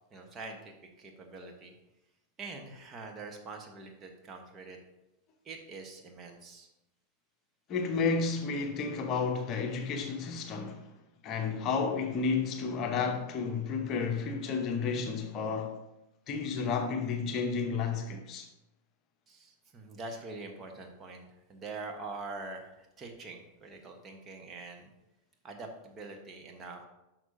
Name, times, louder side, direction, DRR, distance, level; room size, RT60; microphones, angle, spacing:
voice 1, 0.1-1.7 2.4-4.8 5.4-6.7 19.3-24.9 25.4-26.8, right 3 dB, 25° right, 1.1 m, -44 dB
voice 2, 7.7-10.8 11.2-15.7 16.3-18.5, left 5 dB, 35° left, 0.9 m, -31 dB
11.0 x 6.0 x 2.7 m
figure-of-eight pair, 90°, 0 cm